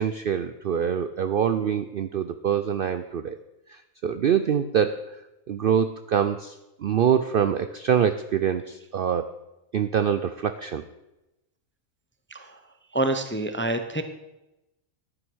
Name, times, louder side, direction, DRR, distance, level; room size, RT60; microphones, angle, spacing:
voice 1, 0.0-3.4 3.7-5.2 5.5-9.3 9.7-10.8, right 8 dB, 60° right, 10 dB, 0.5 m, -25 dB
voice 2, 12.9-14.0, right 2 dB, 15° left, 8 dB, 0.5 m, -27 dB
11.0 x 9.4 x 6.2 m, 0.96 s
omnidirectional pair, 1.4 m